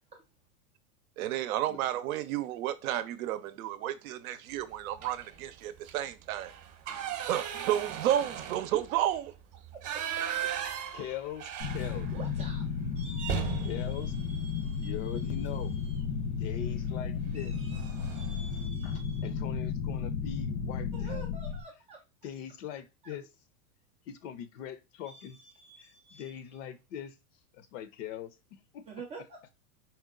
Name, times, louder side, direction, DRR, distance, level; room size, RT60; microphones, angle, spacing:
voice 1, 1.2-6.5 7.2-9.3, right 12 dB, 65° right, 0.7 m, -32 dB
sound 1, 5.0-5.4 5.8-5.9 6.3-12.3 12.6-12.7 13.1-15.3 16.6-16.9 17.3-17.4 17.7-18.4, right 9 dB, 40° right, 0.9 m, -37 dB
voice 2, 9.7-10.5 12.1-12.7 13.0-14.9 17.3-19.3 20.9-22.0 23.0-23.1 25.0-26.3 28.9-29.5, right 5 dB, 15° right, 0.4 m, -48 dB
voice 3, 10.9-12.1 13.6-14.1 14.8-15.8 16.4-17.5 18.8-21.2 22.2-23.3 24.1-25.4 25.8-27.1 27.5-28.8, left 10 dB, 55° left, 0.8 m, -41 dB
sound 2, 11.6-21.6, left 6 dB, 75° left, 1.3 m, -33 dB
4.4 x 2.2 x 3.7 m
hypercardioid pair, 125°, 45 cm